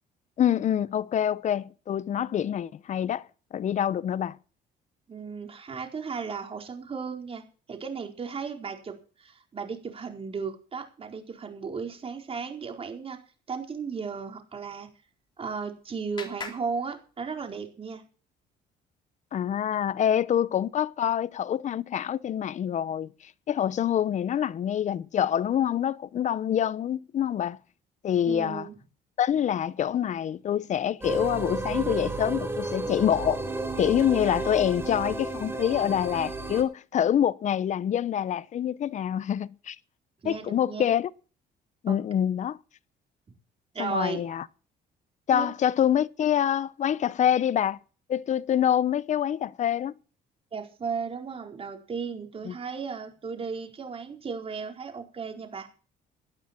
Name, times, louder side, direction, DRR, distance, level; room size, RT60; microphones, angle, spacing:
voice 1, 0.4-4.4 19.3-23.1 23.5-27.6 28.0-28.7 29.2-33.4 33.8-39.8 40.2-41.1 41.8-42.6 43.8-44.5 45.3-47.8 48.1-49.9 52.4-52.5, left 9 dB, 45° left, 0.7 m, -26 dB
voice 2, 5.1-7.4 7.7-13.2 13.5-14.9 15.4-18.0 28.3-28.8 40.2-40.8 41.9-42.0 43.7-44.2 45.3-45.5 50.5-55.7, right 5 dB, 35° right, 4.5 m, -35 dB
Clapping, 15.0-17.7, left 4 dB, 25° left, 3.3 m, -45 dB
sound 1, 31.0-36.6, right 2 dB, 15° right, 4.0 m, -32 dB
18.0 x 11.5 x 4.5 m
cardioid pair, 110°, 17 cm